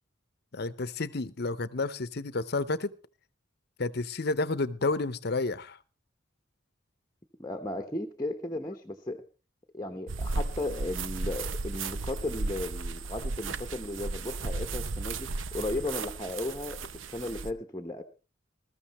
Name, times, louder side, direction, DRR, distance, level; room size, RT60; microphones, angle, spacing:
voice 1, 0.5-2.9 3.8-5.8, left 3 dB, 55° left, 0.8 m, -30 dB
voice 2, 7.4-9.2 9.7-15.3 15.5-16.8 17.1-18.0, left 2 dB, 20° left, 0.9 m, -35 dB
sound 1, 10.1-17.5, right 3 dB, 85° right, 0.7 m, -35 dB
20.5 x 14.0 x 3.1 m
head